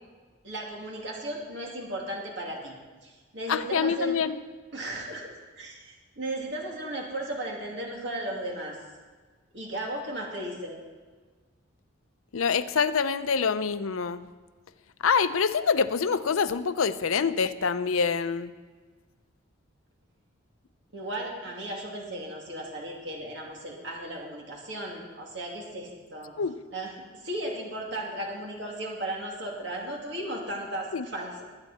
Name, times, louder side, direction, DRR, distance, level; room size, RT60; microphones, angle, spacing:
voice 1, 0.4-2.7 3.0-4.1 4.7-8.8 9.5-10.8 20.9-26.3 26.7-31.4, right 1 dB, 60° right, -2 dB, 2.5 m, -35 dB
voice 2, 3.5-4.4 12.3-14.3 15.0-18.5 26.4-26.5 30.9-31.0, left 6 dB, 85° left, 12 dB, 0.6 m, -26 dB
19.5 x 8.9 x 4.2 m, 1.4 s
head